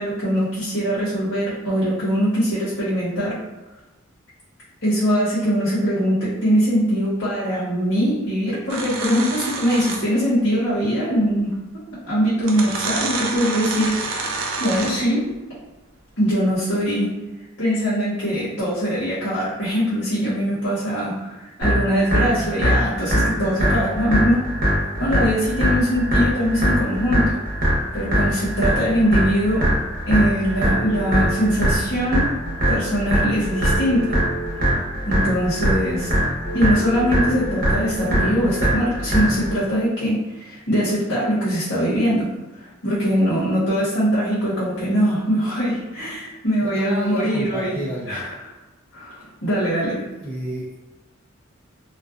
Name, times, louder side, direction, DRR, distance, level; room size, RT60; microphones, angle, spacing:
voice 1, 0.0-3.4 4.8-11.5 11.9-14.2 14.6-15.3 16.2-17.1 17.6-24.5 24.9-27.4 27.9-29.7 30.1-32.3 32.7-34.5 35.0-36.1 36.5-42.3 42.6-47.8 48.1-48.3 48.9-50.0, equal, 70° left, -9 dB, 1.0 m, -22 dB
sound 1, 8.7-10.2 11.5-11.6 12.4-15.1, right 3 dB, 75° right, 0.4 m, -28 dB
sound 2, 21.6-39.6, equal, 45° right, 0.8 m, -22 dB
Telephone, 30.5-31.6 33.5-34.5 36.4-37.5, right 4 dB, 45° left, 0.9 m, -32 dB
voice 2, 46.6-48.2 50.2-50.8, equal, 10° left, -7 dB, 0.5 m, -29 dB
2.5 x 2.2 x 2.4 m, 1.1 s
head